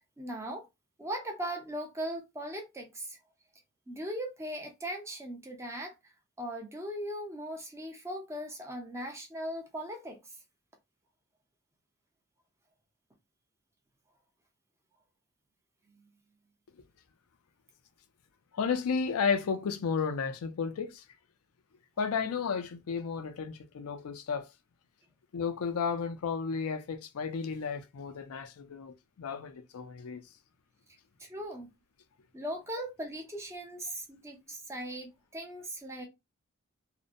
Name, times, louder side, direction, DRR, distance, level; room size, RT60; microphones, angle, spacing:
voice 1, 0.2-0.6 1.0-3.2 3.9-5.9 6.4-10.2 31.2-31.7 32.3-36.0, right 1 dB, 15° right, 0.5 m, -39 dB
voice 2, 18.5-21.0 22.0-24.5 25.3-30.2, left 5 dB, 85° left, 0.4 m, -33 dB
2.6 x 2.1 x 2.5 m
head